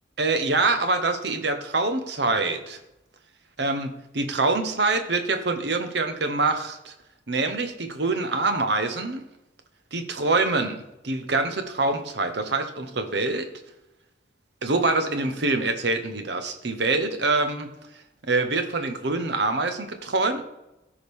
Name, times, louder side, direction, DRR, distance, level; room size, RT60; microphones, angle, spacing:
voice 1, 0.2-2.8 3.6-6.9 7.3-9.2 9.9-13.5 14.6-17.7 18.3-20.4, right 3 dB, 60° right, 8 dB, 1.0 m, -25 dB
14.0 x 4.9 x 3.5 m, 0.92 s
head